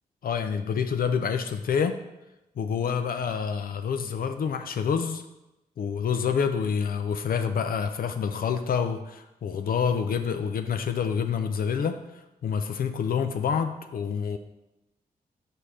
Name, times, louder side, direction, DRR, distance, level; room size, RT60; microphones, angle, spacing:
voice 1, 0.2-2.0 2.6-5.2 5.8-12.0 12.4-14.4, left 6 dB, 70° left, 8 dB, 0.5 m, -27 dB
5.2 x 4.3 x 4.9 m, 0.94 s
cardioid pair, 65°, 16 cm